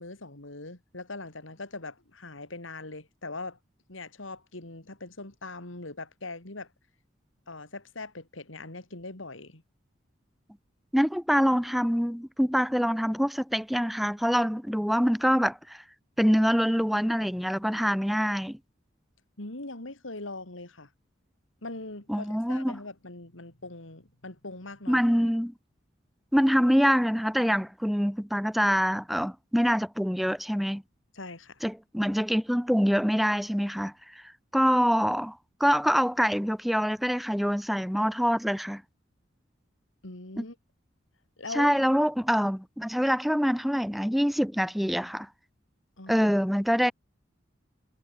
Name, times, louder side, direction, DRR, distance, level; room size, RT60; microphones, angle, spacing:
voice 1, 0.0-3.6 3.9-6.7 7.5-9.6 19.4-20.9 21.6-25.0 31.1-31.6 40.0-40.6 41.4-41.7 46.0-46.3, left 2 dB, 85° left, 3.7 m, -41 dB
voice 2, 10.9-15.8 16.2-18.6 22.1-22.8 24.9-25.5 26.3-30.8 31.6-34.2 34.5-38.8 40.4-40.5 41.5-45.3 46.1-46.9, equal, ahead, 1.5 m, -25 dB
head